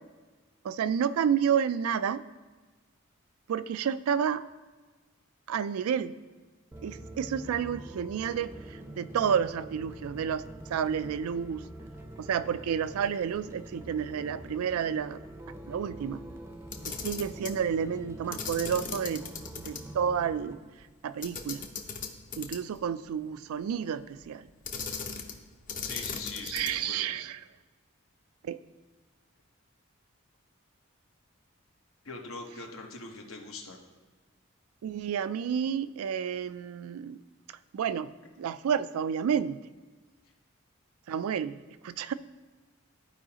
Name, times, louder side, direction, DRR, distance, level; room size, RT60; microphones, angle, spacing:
voice 1, 0.6-2.2 3.5-4.4 5.5-6.1 6.8-10.4 10.7-11.6 12.2-15.2 15.7-16.2 16.8-19.2 19.6-20.6 21.0-21.6 22.4-24.5 26.5-27.4 28.4-28.6 34.8-37.2 37.7-38.1 38.4-39.6 41.1-42.1, right 8 dB, 85° right, 15 dB, 0.3 m, -30 dB
sound 1, 6.7-20.6, right 1 dB, 10° right, 0.5 m, -45 dB
Camera, 16.6-17.6 18.3-19.8 20.1-20.2 21.2-22.8 24.6-25.4 25.7-26.9, left 5 dB, 40° left, 0.7 m, -37 dB
voice 2, 25.8-27.1 32.0-33.8, left 3 dB, 75° left, 2 dB, 1.1 m, -42 dB
13.5 x 4.8 x 2.9 m, 1.3 s
head